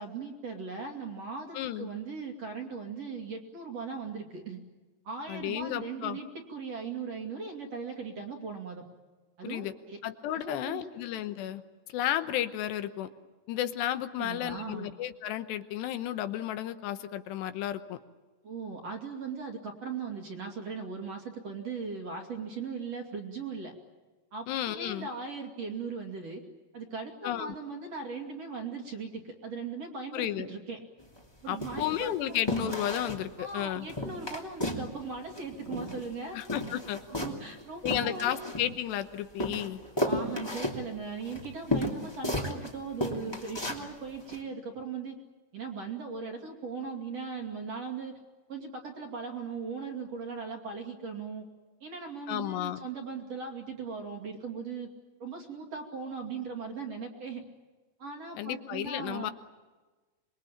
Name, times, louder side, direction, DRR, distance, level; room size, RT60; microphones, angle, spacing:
voice 1, 0.0-4.6 5.0-8.8 9.4-10.0 10.3-10.9 14.2-14.9 18.4-23.7 24.3-26.4 26.7-30.8 31.4-32.4 33.4-36.4 37.1-38.4 40.0-45.2 45.5-48.2 48.5-51.5 51.8-54.9 55.2-57.4 58.0-59.3, right 5 dB, 45° right, 3 dB, 3.1 m, -39 dB
voice 2, 1.5-1.9 5.3-6.2 9.4-9.7 10.0-11.6 11.9-13.1 13.5-18.0 24.5-25.1 27.2-27.5 30.1-30.5 31.5-33.9 36.3-37.0 37.8-39.8 52.3-52.8 58.4-59.3, left 12 dB, 80° left, 10 dB, 3.2 m, -33 dB
sound 1, 31.0-31.2 31.6-32.1 32.5-33.2 33.5-33.6 33.9-34.9 35.1-36.1 36.4-39.0 39.4-42.7 43.0-43.8 44.3-44.4, left 1 dB, 10° left, 1.8 m, -33 dB
26.0 x 22.0 x 8.8 m, 1.3 s
omnidirectional pair, 4.8 m